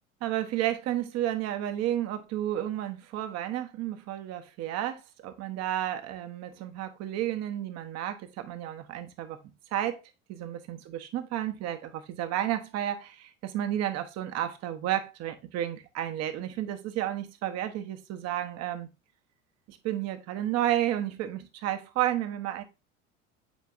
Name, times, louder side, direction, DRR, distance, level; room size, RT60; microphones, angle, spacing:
voice 1, 0.2-9.4 9.7-10.0 10.3-18.9 19.7-22.6, right 12 dB, 45° right, 1.1 m, -32 dB
8.2 x 4.6 x 2.6 m
figure-of-eight pair, 75°, 36 cm